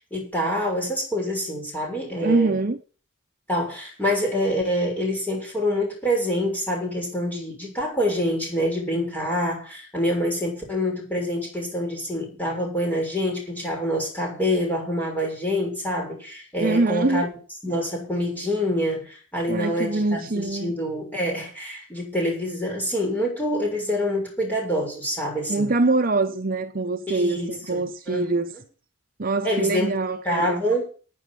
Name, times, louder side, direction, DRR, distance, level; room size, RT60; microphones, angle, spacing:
voice 1, 0.1-2.5 3.5-17.3 17.6-25.7 27.1-28.2 29.4-29.9 30.2-30.9, equal, 10° left, 6.5 m, -26 dB
voice 2, 2.2-2.8 16.6-17.2 19.5-20.7 25.5-28.5 29.2-30.6, right 2 dB, 45° right, 0.8 m, -24 dB
10.0 x 9.3 x 8.3 m
head